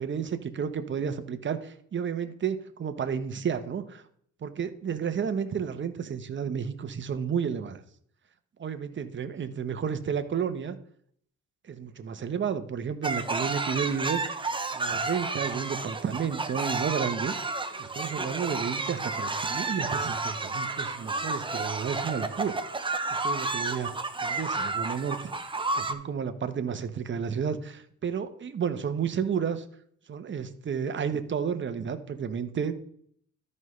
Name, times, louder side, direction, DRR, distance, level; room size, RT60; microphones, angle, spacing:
voice 1, 0.0-4.0 4.4-7.8 8.6-10.8 11.7-14.2 14.7-17.3 17.8-22.6 23.2-23.9 24.2-25.2 25.7-29.6 30.1-32.9, right 7 dB, 40° right, 10 dB, 1.0 m, -31 dB
sound 1, 13.0-25.9, right 3 dB, 15° right, 0.8 m, -31 dB
13.0 x 5.4 x 3.2 m, 0.64 s
cardioid pair, 90°, 30 cm